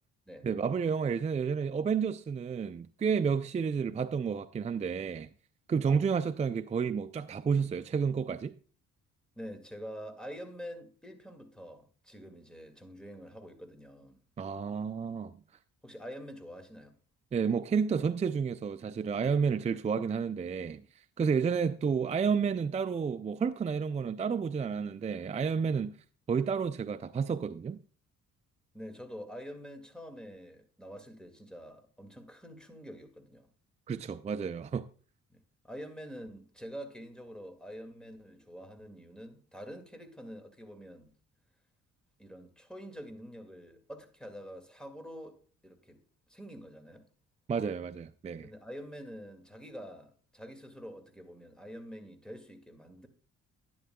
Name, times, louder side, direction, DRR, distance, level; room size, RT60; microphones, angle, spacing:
voice 1, 0.4-5.3 5.7-8.5 14.4-15.3 17.3-20.8 21.2-25.9 26.3-27.8 33.9-34.8 47.5-48.5, right 6 dB, 25° right, 0.4 m, -30 dB
voice 2, 9.4-14.2 15.8-17.0 28.7-33.5 35.3-41.1 42.2-46.0 46.3-47.1 48.4-53.1, equal, 5° left, 2.0 m, -46 dB
11.5 x 10.0 x 2.2 m
cardioid pair, 90°, 30 cm